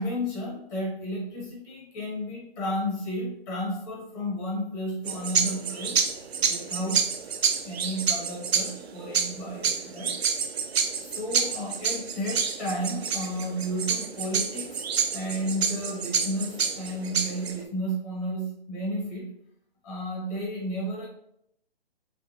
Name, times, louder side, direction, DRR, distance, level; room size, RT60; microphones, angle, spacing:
voice 1, 0.0-6.0 6.4-7.0 7.7-10.2 11.0-14.8 15.1-19.3 19.8-21.1, equal, 20° left, -4 dB, 0.9 m, -32 dB
sound 1, 5.1-17.6, right 6 dB, 85° right, 0.5 m, -28 dB
3.4 x 2.3 x 2.7 m, 0.74 s
hypercardioid pair, 150°, 30 cm